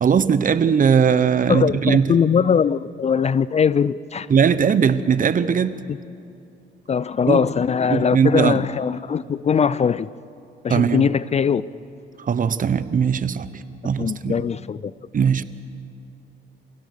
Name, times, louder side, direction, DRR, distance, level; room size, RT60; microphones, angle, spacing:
voice 1, 0.0-2.1 4.3-5.8 7.3-7.4 7.9-8.6 10.7-11.1 12.2-14.3 15.1-15.4, right 7 dB, 45° right, 14 dB, 0.9 m, -19 dB
voice 2, 1.5-4.3 5.9-6.0 6.9-10.1 10.6-11.6 14.0-14.9, left 7 dB, 35° left, 18 dB, 0.4 m, -21 dB
28.0 x 16.5 x 6.6 m, 2.6 s
cardioid pair, 90°, 20 cm